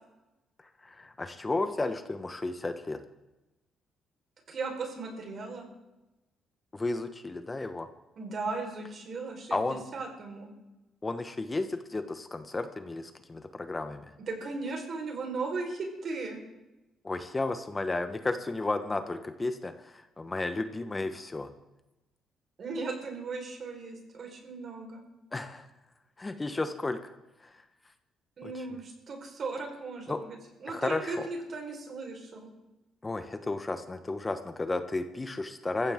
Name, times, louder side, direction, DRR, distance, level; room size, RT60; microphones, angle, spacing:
voice 1, 0.6-3.0 6.7-7.9 9.5-9.8 11.0-14.1 17.0-21.5 25.3-25.7 26.2-27.1 27.4-27.6 28.4-28.7 30.1-30.2 30.7-31.3 33.0-35.9, left 2 dB, 20° left, 8 dB, 1.0 m, -33 dB
voice 2, 4.5-5.7 8.2-10.5 14.3-16.4 22.6-25.0 28.4-32.5, right 3 dB, 55° right, 2 dB, 4.3 m, -37 dB
21.5 x 15.0 x 3.7 m, 1.0 s
cardioid pair, 90°, 0 cm